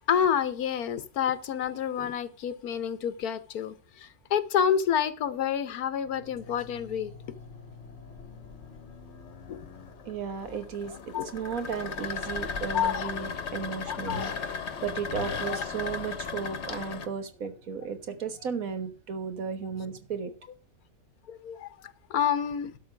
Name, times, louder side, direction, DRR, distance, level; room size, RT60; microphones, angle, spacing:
voice 1, 0.1-7.1 9.5-9.6 11.1-11.3 12.7-13.1 13.9-14.4 15.4-15.6 21.3-21.7 22.1-22.7, left 8 dB, 85° left, 1.4 m, -28 dB
sound 1, 6.0-18.0, left 3 dB, 40° right, 1.7 m, -52 dB
sound 2, 7.3-17.1, left 5 dB, 50° left, 1.2 m, -37 dB
voice 2, 10.1-14.3 14.8-20.3, right 6 dB, 70° right, 1.7 m, -34 dB
12.0 x 6.0 x 5.8 m
omnidirectional pair, 1.6 m